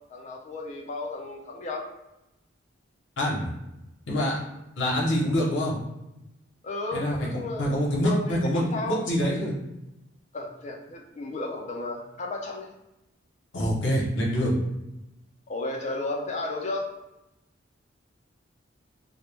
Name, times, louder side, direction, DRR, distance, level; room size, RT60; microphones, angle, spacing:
voice 1, 0.1-1.8 6.6-7.8 8.1-9.0 10.3-12.7 15.5-16.9, left 2 dB, 35° left, 1 dB, 0.3 m, -33 dB
voice 2, 3.2-3.5 4.1-4.4 4.8-5.8 6.9-7.3 7.6-9.5 13.5-14.5, equal, 65° left, -3 dB, 0.7 m, -25 dB
2.1 x 2.0 x 3.1 m, 0.92 s
head